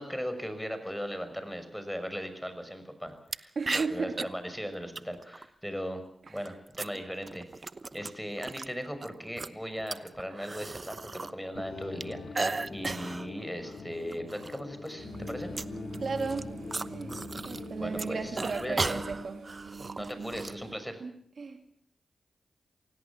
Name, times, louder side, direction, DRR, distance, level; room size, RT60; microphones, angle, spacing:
voice 1, 0.0-6.0 6.3-7.5 7.9-12.2 12.7-15.5 17.8-19.0 20.0-21.0, equal, ahead, 9 dB, 6.2 m, -38 dB
sound 1, 3.3-3.4 3.7-4.2 5.0-5.4 6.3-8.7 9.0-11.3 11.6-13.3 13.7-13.8 14.1-14.6 14.9-17.7 17.9-20.5, right 3 dB, 45° right, 0.9 m, -36 dB
voice 2, 3.6-4.3 16.0-16.5 16.9-19.4 20.0-20.3 21.0-21.7, right 4 dB, 65° right, 6 dB, 2.7 m, -35 dB
sound 2, 11.6-19.1, left 4 dB, 75° left, 2.1 m, -43 dB
sound 3, 15.0-20.7, right 4 dB, 90° right, 4.8 m, -45 dB
26.5 x 17.5 x 7.3 m, 0.67 s
cardioid pair, 50°, 0 cm